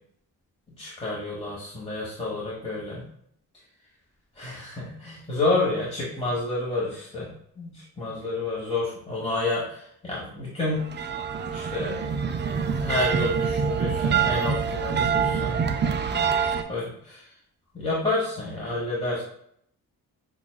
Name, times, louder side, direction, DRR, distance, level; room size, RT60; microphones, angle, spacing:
voice 1, 0.7-3.0 4.4-7.3 7.6-10.9 11.5-12.0 12.4-15.6 16.1-16.3 16.7-17.3 17.7-19.2, left 2 dB, 15° left, -6 dB, 1.2 m, -29 dB
sound 1, 10.8-16.6, right 6 dB, 30° right, 0.4 m, -25 dB
5.8 x 2.4 x 2.3 m, 0.69 s
supercardioid pair, 55°, 38 cm